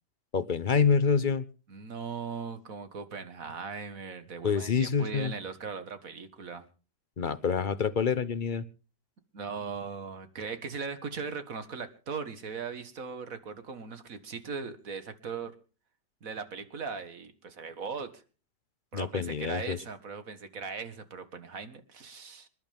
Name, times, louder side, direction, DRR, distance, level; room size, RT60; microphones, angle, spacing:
voice 1, 0.3-1.4 4.4-5.3 7.2-8.6 18.9-19.8, left 6 dB, 45° left, 15 dB, 0.6 m, -27 dB
voice 2, 1.7-6.7 9.3-15.5 16.2-18.2 18.9-22.5, right 5 dB, 55° right, 10 dB, 2.0 m, -39 dB
27.0 x 11.5 x 3.5 m, 0.36 s
omnidirectional pair, 1.8 m